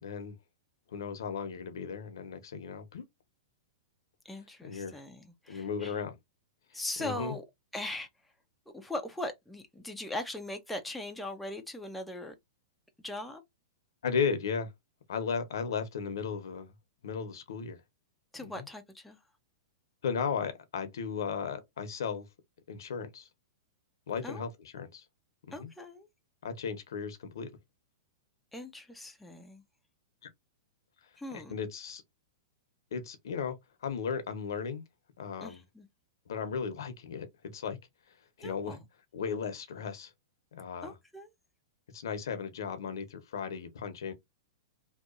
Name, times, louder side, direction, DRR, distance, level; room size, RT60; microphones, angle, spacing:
voice 1, 0.0-0.4 0.9-3.0 4.6-5.0 5.5-6.2 7.0-7.4 14.0-14.7 15.1-16.7 17.0-17.8 18.4-18.7 20.0-22.3 22.7-23.3 24.1-25.0 25.5-25.7 26.4-27.5 30.2-30.3 31.3-32.0 32.9-33.6 33.8-34.8 35.2-35.6 36.3-37.3 37.5-37.8 38.4-38.8 39.1-40.1 40.5-41.0 41.9-44.1, left 6 dB, 80° left, 0.8 m, -35 dB
voice 2, 4.3-5.9 6.7-7.4 7.7-8.1 8.7-12.3 13.0-13.4 18.3-19.2 24.2-24.5 25.5-26.1 28.5-29.6 31.2-31.6 35.4-35.9 38.4-38.8 40.8-41.3, left 1 dB, 5° left, 0.4 m, -40 dB
2.8 x 2.2 x 2.4 m
hypercardioid pair, 155°, 2 cm